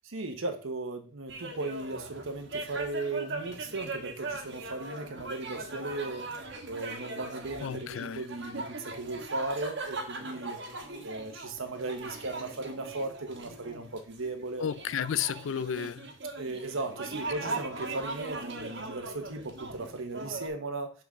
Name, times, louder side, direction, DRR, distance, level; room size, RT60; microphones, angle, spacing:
voice 1, 0.0-6.3 6.7-10.6 11.0-14.7 16.4-20.9, right 2 dB, 80° right, 1.0 m, -37 dB
sound 1, 1.3-20.5, right 2 dB, 60° right, 1.3 m, -39 dB
voice 2, 7.6-8.2 14.6-16.1, left 8 dB, 65° left, 0.4 m, -32 dB
5.8 x 4.0 x 6.2 m
head